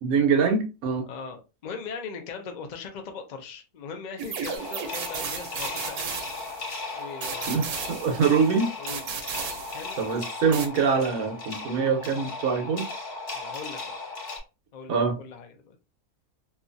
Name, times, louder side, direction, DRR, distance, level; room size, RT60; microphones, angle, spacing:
voice 1, 0.0-1.1 7.5-8.7 10.0-12.9 14.9-15.1, right 5 dB, 70° right, 1.2 m, -24 dB
voice 2, 1.1-6.3 6.9-7.9 8.8-9.2 9.7-10.0 13.3-14.0 14.7-15.8, left 5 dB, 75° left, 0.4 m, -40 dB
sound 1, 4.2-6.8 7.2-8.5 8.9-10.1 10.5-10.7, right 6 dB, 90° right, 1.2 m, -35 dB
sound 2, 4.6-14.4, left 3 dB, 45° left, 1.0 m, -37 dB
2.8 x 2.4 x 2.5 m
omnidirectional pair, 1.6 m